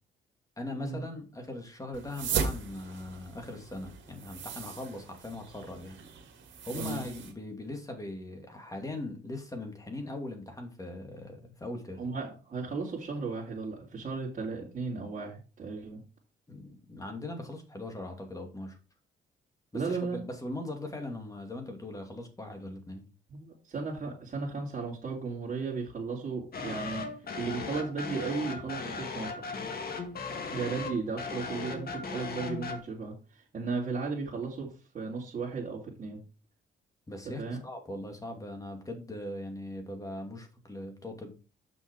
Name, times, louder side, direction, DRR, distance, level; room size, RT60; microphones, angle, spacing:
voice 1, 0.6-6.0 6.6-12.0 16.5-18.8 19.7-23.1 30.8-30.9 37.1-41.3, left 1 dB, 15° left, 4 dB, 2.5 m, -40 dB
sound 1, 1.9-7.3, right 6 dB, 70° right, 2.3 m, -37 dB
voice 2, 12.0-16.0 19.7-20.2 23.3-27.1 27.4-29.4 30.5-36.2 37.4-37.6, right 4 dB, 40° right, -6 dB, 2.8 m, -35 dB
sound 2, 26.5-32.8, left 4 dB, 50° left, 1.8 m, -37 dB
7.3 x 6.2 x 4.6 m, 0.34 s
cardioid pair, 90°, 20 cm